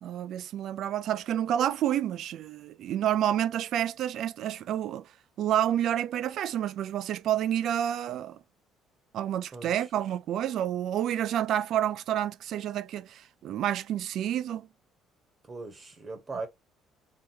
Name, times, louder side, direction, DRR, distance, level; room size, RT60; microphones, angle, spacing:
voice 1, 0.0-5.1 5.4-8.4 9.1-14.7, right 11 dB, 65° right, 0.3 m, -29 dB
voice 2, 15.5-16.5, right 3 dB, 35° right, 1.0 m, -38 dB
3.4 x 2.9 x 2.6 m
hypercardioid pair, 60°, 0 cm